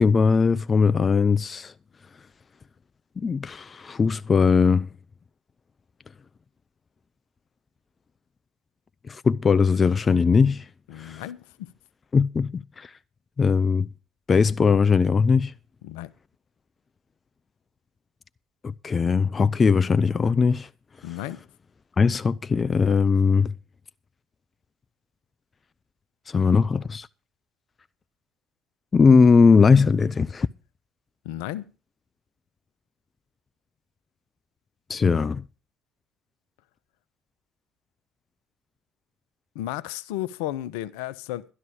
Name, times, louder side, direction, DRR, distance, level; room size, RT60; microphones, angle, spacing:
voice 1, 0.0-1.7 3.2-4.9 9.1-10.6 11.0-11.2 12.1-12.9 13.4-13.9 14.3-15.5 18.6-20.7 22.0-23.5 26.3-27.1 28.9-30.5 34.9-35.4, left 5 dB, 35° left, 0.6 m, -20 dB
voice 2, 10.9-11.7 15.8-16.1 21.0-21.4 31.2-31.7 39.5-41.5, left 14 dB, 75° left, 0.8 m, -33 dB
12.5 x 11.5 x 5.0 m
hypercardioid pair, 65°, 0 cm